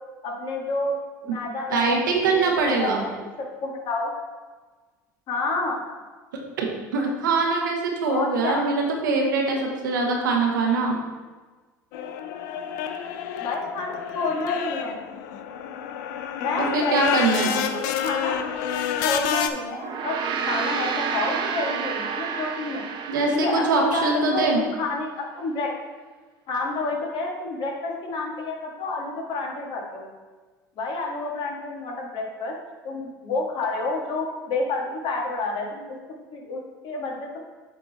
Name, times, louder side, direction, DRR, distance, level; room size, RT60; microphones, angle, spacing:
voice 1, 0.2-1.0 1.2-2.0 2.3-3.1 3.4-4.1 5.3-5.8 8.1-8.7 13.4-15.0 16.4-18.4 19.0-20.2 20.5-22.8 23.3-25.7 26.5-30.1 30.8-32.5 32.8-36.0 36.3-37.4, left 3 dB, 55° left, 0 dB, 1.8 m, -29 dB
voice 2, 1.7-3.0 6.6-6.7 6.9-11.0 16.7-17.5 23.1-24.6, right 3 dB, 85° right, 1 dB, 1.3 m, -23 dB
sound 1, 11.9-19.5, left 9 dB, 75° left, 0.6 m, -29 dB
Gong, 19.7-24.3, right 6 dB, 50° right, 0.8 m, -30 dB
8.2 x 3.7 x 4.1 m, 1.3 s
hypercardioid pair, 75°, 10 cm